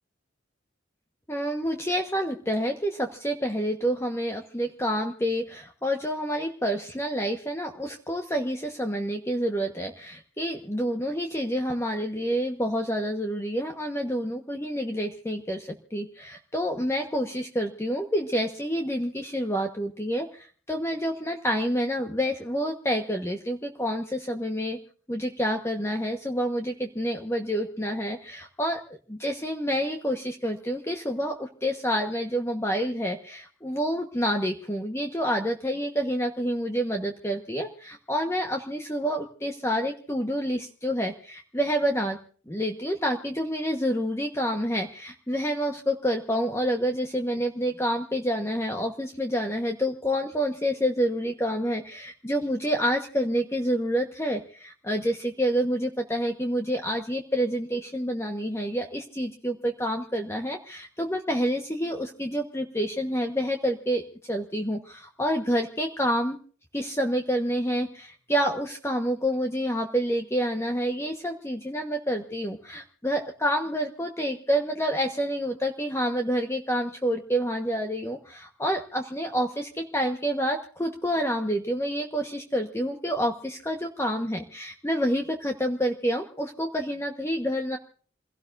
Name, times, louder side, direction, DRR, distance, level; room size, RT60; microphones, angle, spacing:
voice 1, 1.3-24.8 25.1-42.2 42.5-66.4 66.7-87.8, equal, 15° left, 3 dB, 1.3 m, -28 dB
28.5 x 17.5 x 2.6 m, 0.43 s
head